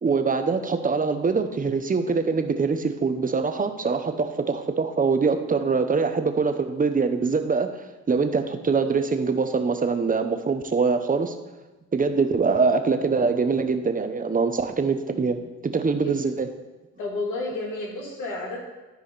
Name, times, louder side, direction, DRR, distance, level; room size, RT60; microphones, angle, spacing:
voice 1, 0.0-11.3 11.9-15.4 15.7-16.5, right 4 dB, 30° right, 7 dB, 0.9 m, -23 dB
voice 2, 17.0-18.6, left 2 dB, 85° left, -3 dB, 3.0 m, -31 dB
13.0 x 4.9 x 4.1 m, 1.1 s
cardioid pair, 90°, 30 cm